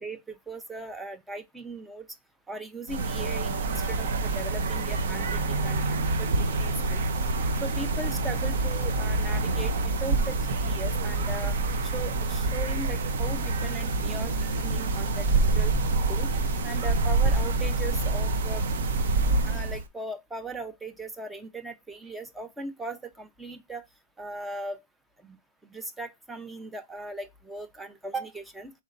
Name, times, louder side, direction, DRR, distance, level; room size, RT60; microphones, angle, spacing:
voice 1, 0.0-2.0 2.5-5.8 6.2-7.0 7.6-11.6 11.8-15.7 16.1-16.3 16.6-18.6 19.4-23.8 24.2-24.8 25.2-25.4 25.7-28.7, right 2 dB, 5° right, 0.4 m, -38 dB
sound 1, 2.9-19.8, right 3 dB, 55° right, 0.8 m, -26 dB
4.1 x 3.2 x 3.8 m
hypercardioid pair, 170°, 0 cm